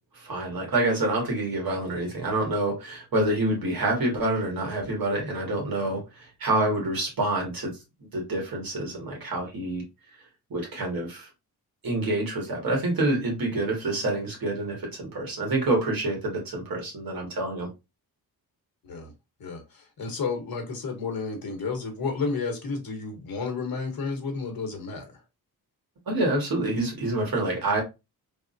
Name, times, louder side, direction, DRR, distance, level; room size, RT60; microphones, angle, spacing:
voice 1, 0.1-7.7 8.1-9.8 10.5-11.3 11.8-17.7 26.1-27.8, right 2 dB, 60° right, 1.4 m, -27 dB
voice 2, 19.4-25.2, left 4 dB, 60° left, 1.0 m, -31 dB
3.5 x 2.0 x 2.5 m
wide cardioid pair, 160°, 39 cm